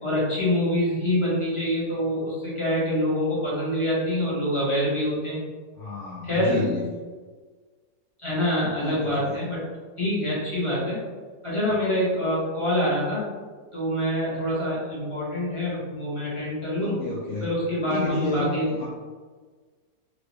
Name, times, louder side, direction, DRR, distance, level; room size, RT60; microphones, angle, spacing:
voice 1, 0.0-5.4 6.2-6.6 8.2-9.6 10.0-11.0 11.4-13.3 13.7-17.0 17.4-18.7, equal, 25° left, -8 dB, 0.6 m, -25 dB
voice 2, 5.8-6.9 8.8-9.3 16.8-17.5 17.9-18.9, left 2 dB, 70° left, -5 dB, 0.7 m, -30 dB
2.9 x 2.8 x 3.0 m, 1.4 s
omnidirectional pair, 1.9 m